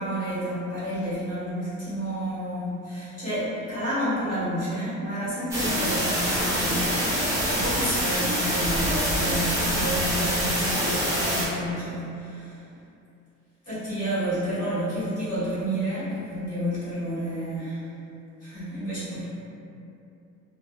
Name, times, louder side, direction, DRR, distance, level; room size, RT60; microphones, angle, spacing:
voice 1, 0.0-12.6 13.6-17.9 18.4-19.3, equal, 25° left, -13 dB, 1.4 m, -30 dB
sound 1, 5.5-11.5, equal, 10° right, 0.7 m, -25 dB
2.8 x 2.0 x 2.2 m, 2.6 s
cardioid pair, 140°, 30 cm